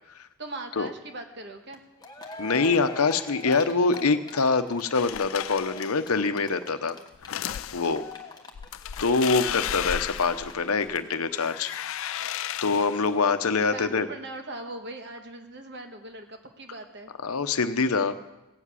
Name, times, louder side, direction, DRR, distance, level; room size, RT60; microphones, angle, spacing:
voice 1, 0.4-1.8 7.3-7.6 13.7-17.1, right 2 dB, 50° right, 5 dB, 1.4 m, -40 dB
Cheering, 1.7-1.8 2.0-11.1 11.4-11.5 11.7-11.8, left 3 dB, 20° left, 1.1 m, -42 dB
voice 2, 2.4-7.0 7.7-8.0 9.0-11.7 12.6-14.1 17.2-18.1, left 4 dB, 80° left, 10 dB, 0.9 m, -24 dB
sound 1, 4.9-6.1 7.1-8.0 8.5-11.0 11.3-13.2, left 10 dB, 65° left, 0.4 m, -34 dB
16.5 x 7.6 x 8.3 m, 0.99 s
head